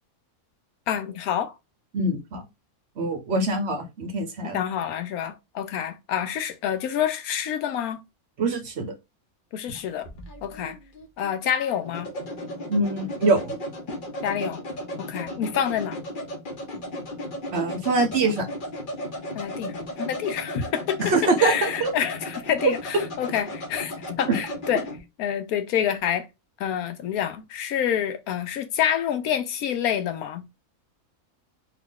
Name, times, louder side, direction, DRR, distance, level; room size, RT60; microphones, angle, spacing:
voice 1, 0.9-1.5 4.4-8.0 9.5-10.1 10.4-10.8 11.2-12.1 14.2-14.6 15.0-16.0 19.3-24.9 25.2-26.3 26.6-30.4, left 9 dB, 90° left, 1.1 m, -27 dB
voice 2, 1.9-2.4 3.0-4.6 8.4-8.9 12.7-13.6 17.5-18.5 21.0-21.9 22.6-22.8, right 3 dB, 55° right, 0.9 m, -24 dB
sound 1, 9.7-25.0, left 1 dB, 45° left, 0.9 m, -35 dB
2.9 x 2.5 x 3.6 m
omnidirectional pair, 1.5 m